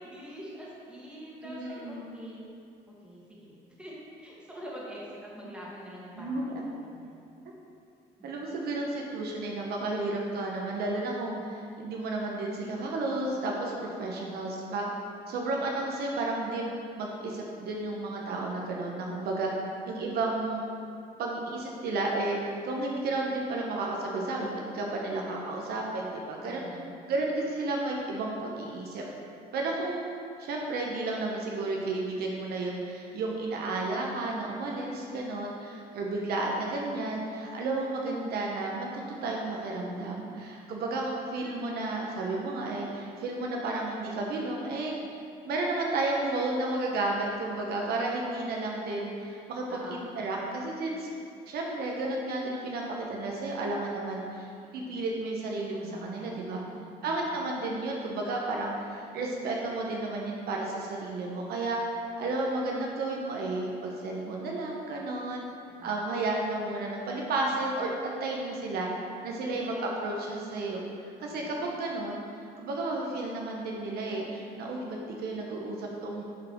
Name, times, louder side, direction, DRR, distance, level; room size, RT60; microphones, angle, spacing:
voice 1, 0.0-2.5 2.9-3.5 3.8-3.9 4.2-7.2 8.2-8.5 14.1-14.4 26.4-27.1 35.9-36.3 49.7-50.1 55.8-57.2 65.7-66.0 71.3-71.5, equal, 5° right, -6 dB, 1.6 m, -46 dB
voice 2, 1.4-2.2 6.2-6.5 8.2-14.9 15.3-16.6 16.9-19.5 19.9-20.7 21.2-22.4 22.6-26.6 27.1-29.0 29.5-44.9 45.5-51.1 51.5-56.6 57.0-61.8 62.2-65.4 65.8-68.9 69.2-70.8 71.2-72.2 72.6-76.2, right 2 dB, 70° right, -1 dB, 0.9 m, -32 dB
7.2 x 3.9 x 4.5 m, 2.4 s
cardioid pair, 110°, 17 cm